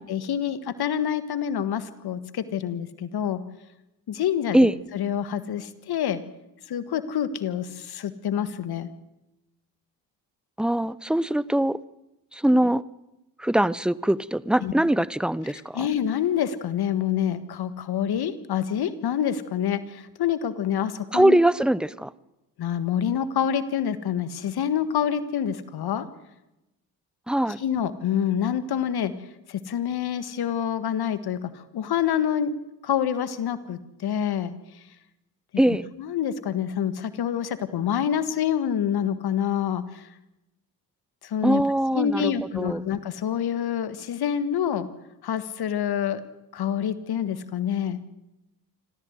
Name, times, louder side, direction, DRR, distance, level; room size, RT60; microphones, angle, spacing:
voice 1, 0.0-3.4 4.1-4.7 4.9-6.2 6.7-8.9 14.6-14.7 15.7-21.4 22.6-26.1 27.6-29.1 29.5-32.5 32.8-34.8 36.0-40.1 41.2-41.6 41.9-44.9 45.2-46.2 46.5-48.0, left 9 dB, 65° left, 13 dB, 1.7 m, -27 dB
voice 2, 10.6-11.8 12.3-12.8 13.4-15.9 21.1-22.1 27.3-27.6 35.6-35.9 41.4-42.3 42.6-42.8, right 1 dB, ahead, 18 dB, 0.8 m, -22 dB
26.5 x 15.0 x 8.0 m, 0.93 s
hypercardioid pair, 50°, 42 cm